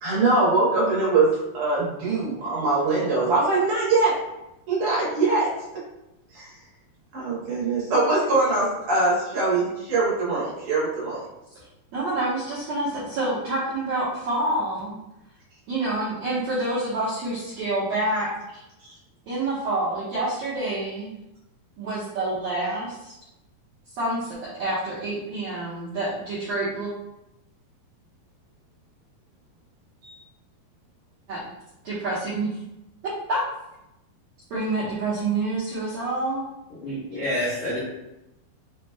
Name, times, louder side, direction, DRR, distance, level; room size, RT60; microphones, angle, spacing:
voice 1, 0.0-4.2 4.7-5.8 6.3-6.5 7.1-11.2 18.8-18.9 30.0-30.1, right 3 dB, 65° right, -7 dB, 2.2 m, -23 dB
voice 2, 11.9-15.0 15.7-18.6 19.3-21.1 21.8-23.2 24.0-26.9 31.3-31.4 31.8-32.6 33.0-33.4 34.5-36.4, right 2 dB, 80° right, -9 dB, 1.5 m, -27 dB
voice 3, 36.8-37.8, left 1 dB, 65° left, -12 dB, 1.4 m, -28 dB
6.1 x 3.0 x 2.2 m, 0.92 s
omnidirectional pair, 4.6 m